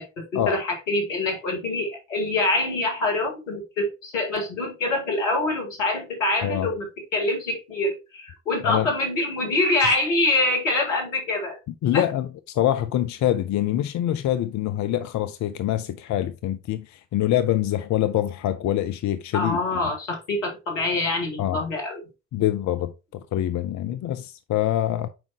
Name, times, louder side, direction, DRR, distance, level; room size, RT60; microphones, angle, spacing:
voice 1, 0.0-6.9 7.1-11.6 11.9-12.0 19.3-22.0, left 2 dB, 80° left, 1.9 m, -25 dB
voice 2, 11.8-19.6 21.4-21.6 22.3-25.1, left 12 dB, 50° left, 0.7 m, -25 dB
7.7 x 5.2 x 2.9 m
figure-of-eight pair, 45°, 37 cm